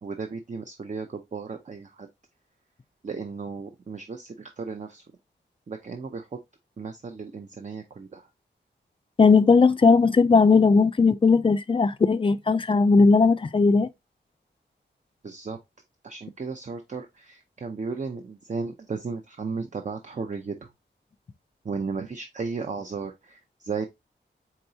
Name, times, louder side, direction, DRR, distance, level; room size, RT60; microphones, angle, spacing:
voice 1, 0.0-2.1 3.0-5.0 5.7-6.4 6.8-8.3 15.2-15.6 16.0-20.6 21.6-23.9, right 4 dB, 40° right, 0.6 m, -35 dB
voice 2, 9.2-13.9, left 4 dB, 30° left, 0.4 m, -18 dB
4.4 x 3.8 x 2.6 m
wide cardioid pair, 90°, 19 cm